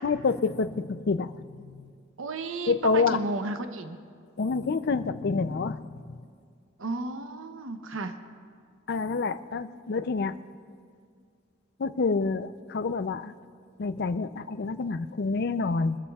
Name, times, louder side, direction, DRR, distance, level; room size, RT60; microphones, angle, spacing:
voice 1, 0.0-1.9 2.7-3.2 4.4-5.8 6.1-6.2 8.9-10.4 11.8-13.3 13.8-16.0, left 4 dB, 55° left, 12 dB, 0.5 m, -28 dB
voice 2, 2.2-4.0 6.8-8.2, right 2 dB, 90° right, 7 dB, 0.8 m, -33 dB
25.0 x 13.5 x 2.4 m, 2.1 s
head